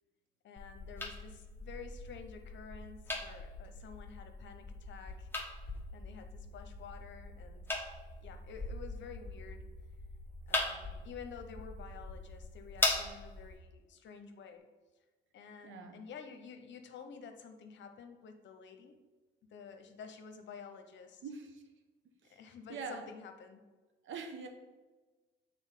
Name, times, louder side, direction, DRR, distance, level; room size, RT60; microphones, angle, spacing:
voice 1, 0.4-5.4 5.9-7.7 8.2-9.6 10.5-14.7 15.3-19.0 19.5-21.2 22.3-23.6, left 6 dB, 65° left, 7 dB, 0.9 m, -50 dB
sound 1, 0.6-13.6, left 2 dB, 10° left, 1.1 m, -40 dB
voice 2, 15.6-16.0 21.2-21.6 22.2-23.1 24.0-24.5, right 5 dB, 75° right, 5 dB, 1.1 m, -44 dB
7.0 x 4.0 x 5.8 m, 1.2 s
cardioid pair, 90°, 20 cm